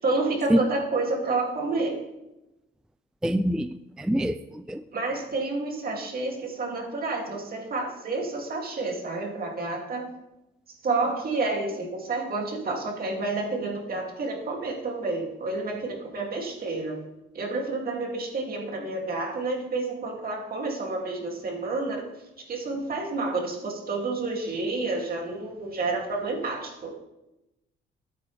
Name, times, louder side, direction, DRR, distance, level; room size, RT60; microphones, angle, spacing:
voice 1, 0.0-2.0 4.9-10.1 10.8-17.0 17.3-22.0 22.5-26.9, right 3 dB, 50° right, 0 dB, 2.8 m, -29 dB
voice 2, 3.2-3.7 4.0-4.8, equal, 5° right, 11 dB, 0.3 m, -24 dB
13.0 x 8.5 x 3.4 m, 0.96 s
cardioid pair, 90°, 20 cm